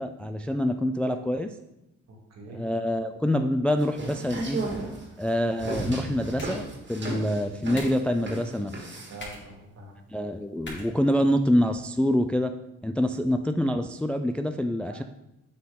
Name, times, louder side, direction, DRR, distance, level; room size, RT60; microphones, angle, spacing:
voice 1, 0.0-1.5 2.5-4.6 5.2-6.6 6.9-8.7 10.1-12.5 12.8-15.0, left 1 dB, 5° left, 7 dB, 0.3 m, -26 dB
voice 2, 2.1-2.6 9.1-10.0 14.8-15.0, right 2 dB, 60° right, 0 dB, 2.1 m, -45 dB
sound 1, 3.8-9.2, right 2 dB, 40° right, 1.8 m, -34 dB
sound 2, 5.8-11.8, left 2 dB, 35° left, 2.5 m, -47 dB
7.7 x 4.6 x 3.7 m, 0.87 s
cardioid pair, 90°, 30 cm